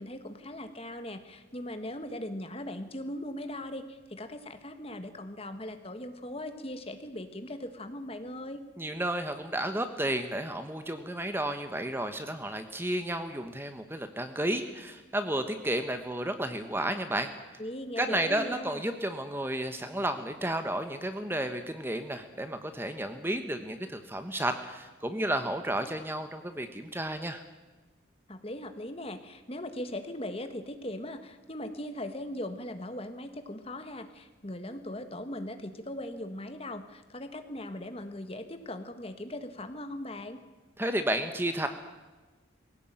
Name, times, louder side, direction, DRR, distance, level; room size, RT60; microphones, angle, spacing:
voice 1, 0.0-8.6 17.6-18.9 28.3-40.4, left 1 dB, 30° left, 8 dB, 1.5 m, -39 dB
voice 2, 8.8-17.3 18.0-27.4 40.8-41.7, right 1 dB, 10° right, 8 dB, 1.1 m, -32 dB
20.5 x 17.0 x 9.0 m, 1.2 s
head